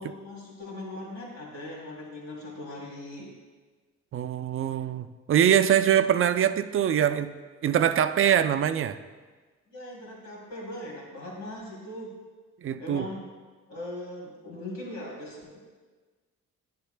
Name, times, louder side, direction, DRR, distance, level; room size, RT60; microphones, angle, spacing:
voice 1, 0.0-3.3 9.7-12.1 12.8-13.2 13.7-15.6, left 1 dB, 65° left, -3 dB, 2.9 m, -40 dB
voice 2, 4.1-7.3 7.6-9.0 12.6-13.1, right 9 dB, 45° right, 10 dB, 0.4 m, -23 dB
11.5 x 10.0 x 2.2 m, 1.4 s
cardioid pair, 90°, 30 cm